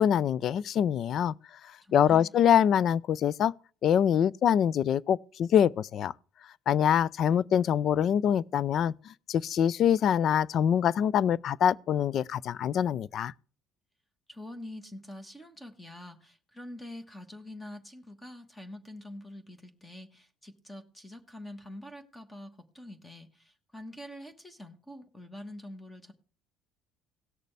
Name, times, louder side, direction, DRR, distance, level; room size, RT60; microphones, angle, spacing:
voice 1, 0.0-1.3 1.9-3.5 3.8-6.1 6.7-8.9 9.3-13.3, left 9 dB, 45° left, 0.4 m, -24 dB
voice 2, 1.8-2.3 14.3-26.1, left 1 dB, 10° left, 1.3 m, -45 dB
17.5 x 6.6 x 3.4 m
cardioid pair, 130°, 0 cm